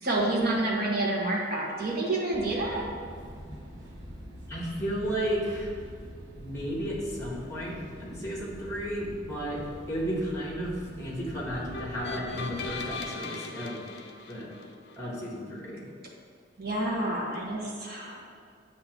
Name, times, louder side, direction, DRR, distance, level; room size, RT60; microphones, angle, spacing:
voice 1, 0.0-2.8 16.6-18.2, right 2 dB, 50° right, -3 dB, 1.2 m, -28 dB
sound 1, 2.3-13.0, equal, 85° right, 1.2 m, -45 dB
voice 2, 4.5-5.7 6.4-9.6 9.9-13.8 14.3-14.5 15.0-15.8, equal, 15° left, -3 dB, 1.4 m, -33 dB
sound 2, 11.7-15.0, left 4 dB, 60° left, 0.7 m, -39 dB
8.3 x 2.9 x 5.9 m, 2.2 s
head